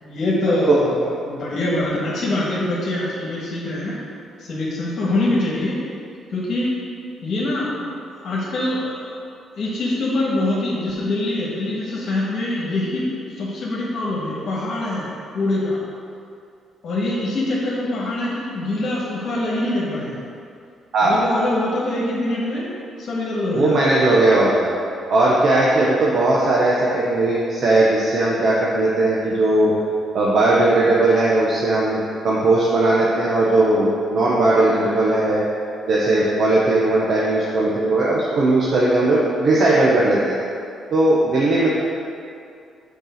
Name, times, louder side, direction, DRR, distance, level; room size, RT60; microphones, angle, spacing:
voice 1, 0.0-4.0 4.4-5.8 6.3-6.7 7.2-7.9 8.2-9.1 9.5-13.1 13.4-15.8 16.8-20.2 21.0-22.7 23.0-23.9 25.8-26.0, left 1 dB, 55° left, -5 dB, 1.5 m, -24 dB
voice 2, 23.5-24.7 25.1-29.7 30.1-35.4 35.9-40.4 40.9-41.7, right 2 dB, 60° right, -6 dB, 1.0 m, -18 dB
5.5 x 4.6 x 5.8 m, 2.5 s
cardioid pair, 90°, 0 cm